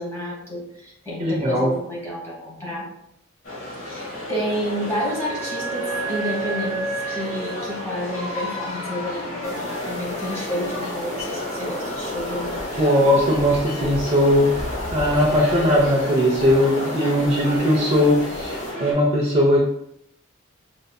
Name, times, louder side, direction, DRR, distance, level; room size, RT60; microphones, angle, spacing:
voice 1, 0.0-2.9 3.8-12.6, equal, 15° left, -4 dB, 1.1 m, -30 dB
voice 2, 1.2-1.7 12.8-19.6, equal, 30° right, -3 dB, 0.5 m, -19 dB
sound 1, 3.4-18.9, left 2 dB, 75° left, 1.4 m, -33 dB
Wind instrument woodwind instrument, 4.4-9.0, right 4 dB, 85° right, 0.7 m, -32 dB
sound 2, 9.4-18.7, left 1 dB, 30° left, 0.7 m, -33 dB
5.1 x 2.6 x 2.2 m, 0.75 s
head